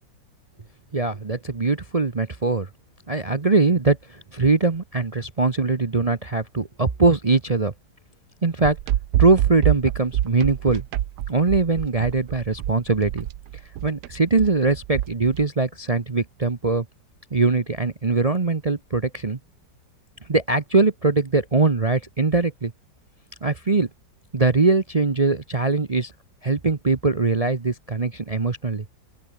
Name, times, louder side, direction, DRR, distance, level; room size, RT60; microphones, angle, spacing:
voice 1, 0.9-2.7 3.1-7.7 8.4-8.8 9.2-10.8 11.3-13.3 13.8-16.9 17.3-19.4 20.3-22.7 23.4-23.9 24.3-26.1 26.4-28.8, right 3 dB, 30° right, 0.7 m, -21 dB
sound 1, 8.6-15.4, right 13 dB, 65° right, 1.3 m, -26 dB
open air
omnidirectional pair, 2.0 m